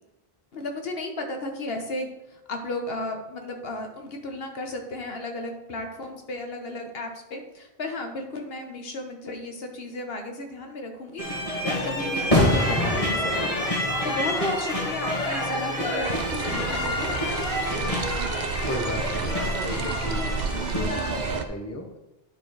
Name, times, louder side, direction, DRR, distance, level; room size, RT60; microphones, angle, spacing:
voice 1, 0.5-17.1, left 2 dB, 70° left, 4 dB, 1.3 m, -34 dB
sound 1, 11.2-21.4, left 1 dB, 35° left, 1.9 m, -27 dB
sound 2, 16.0-21.4, right 5 dB, 55° right, 0.6 m, -31 dB
voice 2, 18.7-21.8, left 1 dB, 15° left, 4 dB, 0.8 m, -34 dB
10.0 x 4.5 x 4.8 m, 0.98 s
omnidirectional pair, 1.0 m